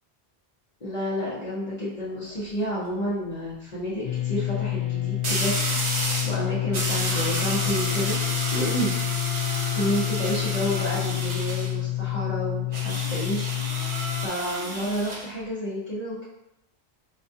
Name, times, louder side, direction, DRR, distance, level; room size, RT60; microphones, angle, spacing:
voice 1, 0.8-5.5 6.2-8.2 8.5-8.9 9.7-13.4 14.2-16.2, equal, 40° left, -9 dB, 0.9 m, -30 dB
sound 1, 2.1-2.4 5.2-6.4 6.7-11.7 12.7-15.3, right 2 dB, 45° right, 0.7 m, -31 dB
sound 2, 4.0-14.3, left 16 dB, 55° left, 0.4 m, -28 dB
5.0 x 2.3 x 2.6 m, 0.83 s
omnidirectional pair, 1.1 m